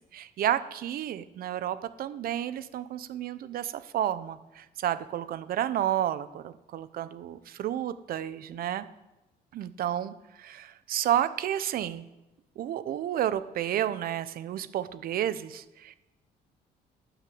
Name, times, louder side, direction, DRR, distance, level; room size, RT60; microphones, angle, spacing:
voice 1, 0.1-8.9 9.5-12.0 12.6-16.0, right 11 dB, 60° right, 13 dB, 0.8 m, -31 dB
17.5 x 6.2 x 7.8 m, 1.0 s
cardioid pair, 110°, 17 cm